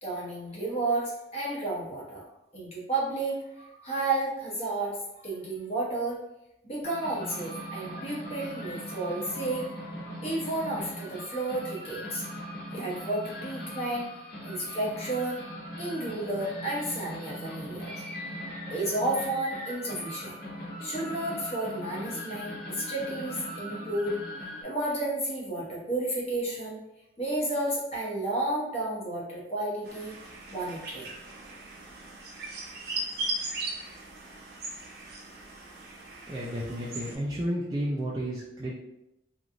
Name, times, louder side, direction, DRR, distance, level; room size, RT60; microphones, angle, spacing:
voice 1, 0.0-2.2 2.5-6.2 6.6-9.7 10.2-12.2 12.7-14.1 14.4-15.4 15.8-18.0 18.7-20.4 20.8-24.2 24.6-26.8 27.2-31.1, right 2 dB, 35° left, -4 dB, 0.8 m, -32 dB
sound 1, 6.8-24.6, equal, 60° left, 1.1 m, -40 dB
sound 2, 29.8-37.1, right 2 dB, 55° right, 0.6 m, -38 dB
voice 2, 36.3-38.8, equal, 20° right, -6 dB, 0.3 m, -32 dB
3.0 x 2.5 x 2.5 m, 0.88 s
head